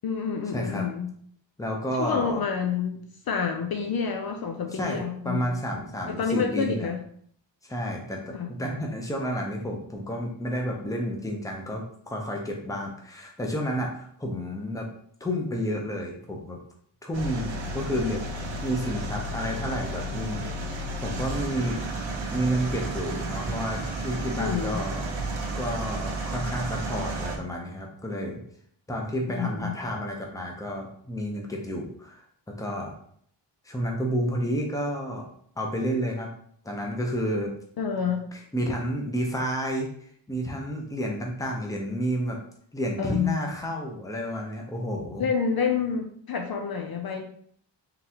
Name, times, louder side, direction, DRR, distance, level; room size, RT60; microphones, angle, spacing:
voice 1, 0.0-1.1 2.0-5.5 6.1-7.0 8.3-8.5 24.4-24.8 29.3-29.7 37.8-38.2 43.0-43.4 45.2-47.2, left 6 dB, 55° left, 4 dB, 0.5 m, -28 dB
voice 2, 0.5-0.8 1.6-2.4 4.7-6.9 7.7-14.9 15.2-16.6 17.0-18.2 18.6-20.6 21.0-21.8 22.3-25.1 25.6-28.4 28.9-32.2 32.5-32.9 33.6-35.3 35.6-36.3 36.6-37.5 38.5-39.9 40.3-42.4 42.7-45.3, equal, 10° left, 0 dB, 0.6 m, -30 dB
sound 1, 17.1-27.4, right 1 dB, 85° right, 0.9 m, -32 dB
3.9 x 3.2 x 2.8 m, 0.63 s
wide cardioid pair, 155°, 45 cm